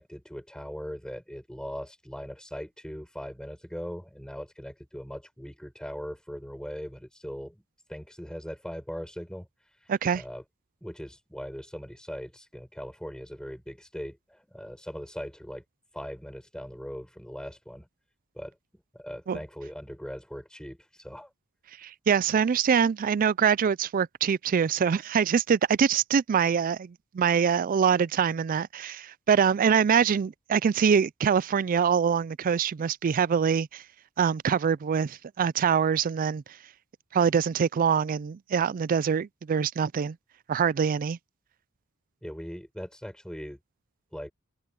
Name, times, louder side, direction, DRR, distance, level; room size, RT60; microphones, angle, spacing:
voice 1, 0.0-7.6 7.9-10.4 10.8-15.6 15.9-17.9 18.3-18.6 18.9-21.3 42.2-43.6 44.1-44.3, equal, 5° left, 7.4 m, -40 dB
voice 2, 9.9-10.2 19.3-19.4 21.8-33.8 34.2-36.4 37.1-40.2 40.5-41.2, right 7 dB, 40° right, 0.3 m, -24 dB
head